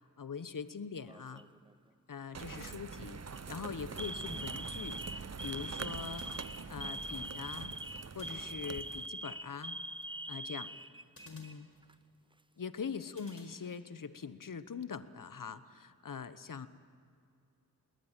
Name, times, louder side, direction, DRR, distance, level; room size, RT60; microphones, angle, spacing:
voice 1, 0.0-1.5 2.1-5.0 5.4-6.4 6.7-7.8 8.1-9.8 10.3-10.7 11.3-11.7 12.6-16.7, left 6 dB, 60° left, 13 dB, 1.1 m, -43 dB
Alarm, 1.1-1.6 2.5-2.8 3.2-3.4 4.0-11.5 11.8-11.9 12.9-13.6, right 1 dB, 15° right, 0.6 m, -43 dB
sound 1, 2.3-9.1, right 5 dB, 45° right, 0.8 m, -44 dB
sound 2, 6.2-7.1 8.2-9.1 11.1-12.3 13.2-14.2, left 1 dB, 40° left, 4.8 m, -61 dB
21.5 x 19.0 x 9.0 m, 2.4 s
cardioid pair, 40°, 37 cm